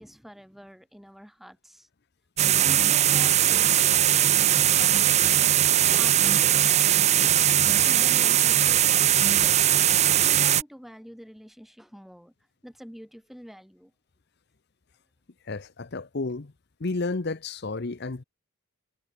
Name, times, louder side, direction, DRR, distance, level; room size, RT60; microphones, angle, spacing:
voice 1, 0.0-1.9 2.6-4.1 4.8-7.1 7.8-9.9 10.2-12.3 12.6-13.9, equal, ahead, 6.8 m, -46 dB
sound 1, 2.4-10.6, right 11 dB, 30° right, 0.5 m, -20 dB
voice 2, 15.5-16.5 16.8-18.2, left 3 dB, 50° left, 0.8 m, -31 dB
head